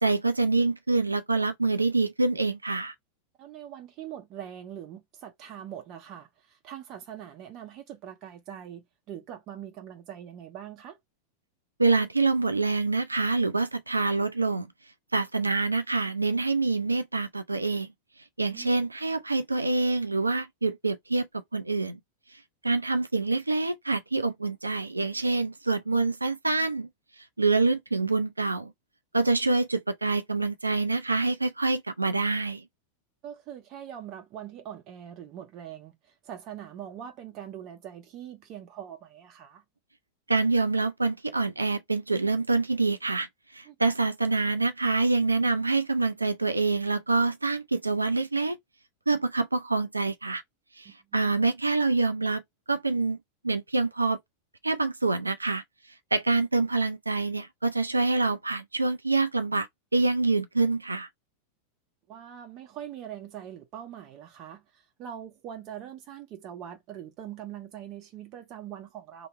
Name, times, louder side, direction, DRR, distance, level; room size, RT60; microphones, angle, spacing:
voice 1, 0.0-2.9 11.8-14.7 15.1-17.9 18.4-22.0 22.3-26.9 27.2-28.7 29.1-32.6 40.3-43.3 43.5-48.6 49.1-50.4 50.8-52.4 52.7-53.2 53.4-54.2 54.6-55.6 56.1-61.1, right 3 dB, 80° right, 0.4 m, -26 dB
voice 2, 3.4-11.0 18.5-18.7 33.2-39.6 43.7-43.8 50.8-51.0 62.1-69.3, right 10 dB, 35° right, 0.7 m, -42 dB
2.9 x 2.9 x 2.9 m
figure-of-eight pair, 90°, 0 cm